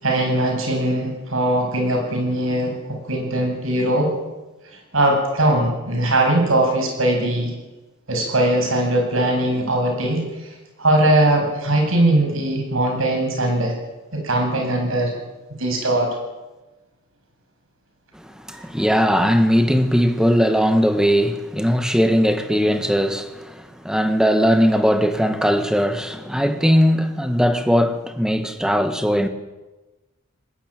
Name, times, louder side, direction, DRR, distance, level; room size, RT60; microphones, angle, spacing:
voice 1, 0.0-4.2 4.9-7.5 8.1-10.3 10.8-13.7 14.1-15.2 15.6-16.2, right 1 dB, 70° right, 7.7 m, -20 dB
voice 2, 18.2-29.3, equal, 5° right, 1.8 m, -19 dB
20.0 x 19.5 x 9.1 m
head